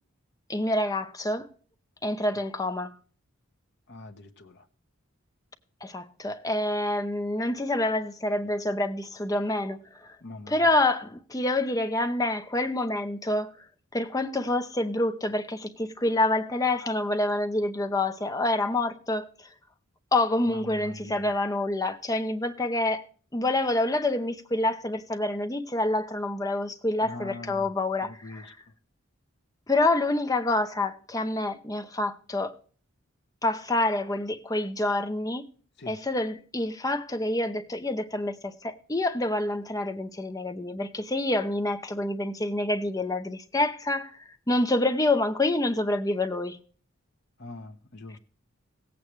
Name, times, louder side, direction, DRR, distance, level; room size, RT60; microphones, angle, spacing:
voice 1, 0.5-1.5 2.0-2.9 5.8-10.2 10.5-13.5 13.9-19.3 20.1-23.0 23.3-28.5 29.7-32.5 33.4-35.4 35.9-44.1 44.5-46.6, left 2 dB, 15° left, 0.7 m, -27 dB
voice 2, 3.9-4.7 10.2-10.6 20.5-21.3 27.0-27.7 28.0-28.5 35.8-36.0 47.4-48.2, left 2 dB, 55° left, 1.1 m, -42 dB
16.5 x 8.5 x 3.1 m
head